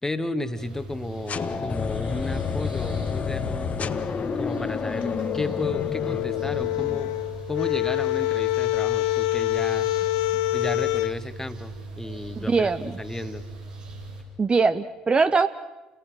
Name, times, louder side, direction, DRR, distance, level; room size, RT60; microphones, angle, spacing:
voice 1, 0.0-3.8 4.3-7.2 7.5-9.9 10.5-13.4, left 1 dB, 10° left, 10 dB, 1.6 m, -33 dB
sound 1, 0.5-14.2, right 3 dB, 80° right, 5.4 m, -39 dB
sound 2, 1.3-7.2, left 6 dB, 35° left, 1.2 m, -30 dB
sound 3, 5.0-11.1, left 18 dB, 65° left, 0.7 m, -26 dB
voice 2, 12.5-12.9 14.4-15.5, right 4 dB, 25° right, 11 dB, 0.8 m, -21 dB
30.0 x 19.0 x 6.2 m, 1.1 s
figure-of-eight pair, 55°, 4 cm